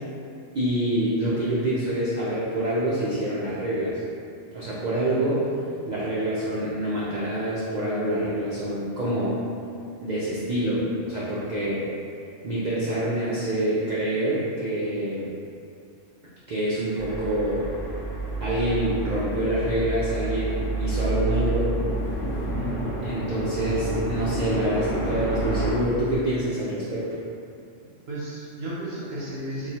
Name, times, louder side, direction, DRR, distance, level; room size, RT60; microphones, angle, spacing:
voice 1, 0.5-4.0 4.5-5.5 5.9-9.4 10.0-11.8 12.4-15.3 16.5-17.6 18.4-21.7 23.0-27.0, right 1 dB, 90° right, -9 dB, 0.3 m, -26 dB
sound 1, 16.9-25.7, right 1 dB, 55° left, 0.6 m, -29 dB
voice 2, 22.5-22.9 27.8-29.7, right 1 dB, 60° right, -7 dB, 0.7 m, -34 dB
3.0 x 2.2 x 2.8 m, 2.4 s
omnidirectional pair, 1.3 m